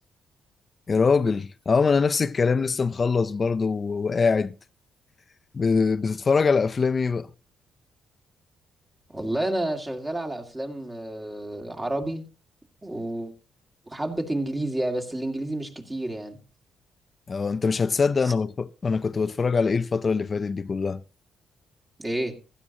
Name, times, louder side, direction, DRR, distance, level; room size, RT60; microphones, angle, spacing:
voice 1, 0.9-4.5 5.5-7.3 17.3-21.0, left 5 dB, 35° left, 0.6 m, -23 dB
voice 2, 9.1-12.2 12.8-13.3 13.9-16.4 18.2-18.3 22.0-22.4, right 1 dB, 20° right, 2.2 m, -30 dB
16.0 x 12.5 x 2.9 m
cardioid pair, 90°, 0 cm